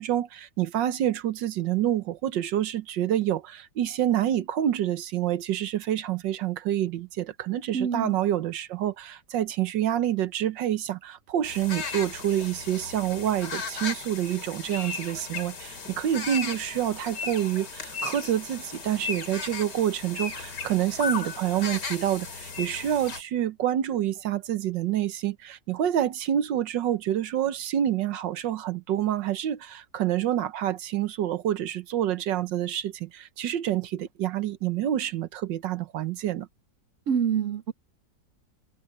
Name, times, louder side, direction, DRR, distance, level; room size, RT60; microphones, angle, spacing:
voice 1, 0.0-36.5, right 11 dB, 80° right, 1.6 m, -27 dB
voice 2, 7.7-8.2 37.1-37.7, right 7 dB, 60° right, 0.8 m, -26 dB
sound 1, 11.4-23.2, left 5 dB, 70° left, 3.2 m, -36 dB
open air
omnidirectional pair, 1.9 m